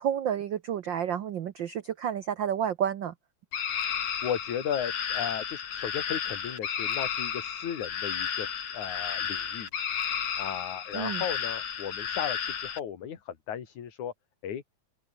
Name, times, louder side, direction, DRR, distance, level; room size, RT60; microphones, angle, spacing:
voice 1, 0.0-3.1 10.9-11.2, right 9 dB, 85° right, 1.0 m, -30 dB
sound 1, 3.5-12.8, left 8 dB, 60° left, 3.3 m, -33 dB
voice 2, 4.2-8.5 8.7-9.7 10.4-14.1 14.4-14.6, left 9 dB, 80° left, 3.7 m, -35 dB
open air
omnidirectional pair, 3.3 m